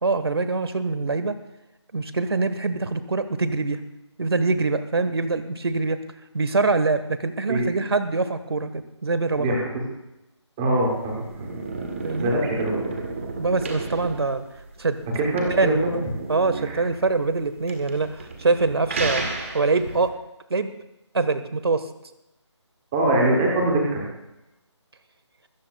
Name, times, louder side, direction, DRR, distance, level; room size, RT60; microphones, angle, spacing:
voice 1, 0.0-1.4 1.9-3.8 4.2-6.0 6.3-9.6 12.0-12.3 13.4-14.4 14.8-15.0 15.5-15.8 16.3-19.3 19.5-20.1 20.5-20.7 21.1-21.8, right 3 dB, 55° right, 11 dB, 1.3 m, -24 dB
voice 2, 10.6-11.6 12.1-12.9 15.1-16.0 16.6-16.8 22.9-24.0, right 1 dB, 5° right, -2 dB, 0.8 m, -23 dB
sound 1, 10.8-20.1, right 3 dB, 25° right, 1.6 m, -33 dB
25.5 x 14.5 x 2.3 m, 0.91 s
figure-of-eight pair, 175°, 15 cm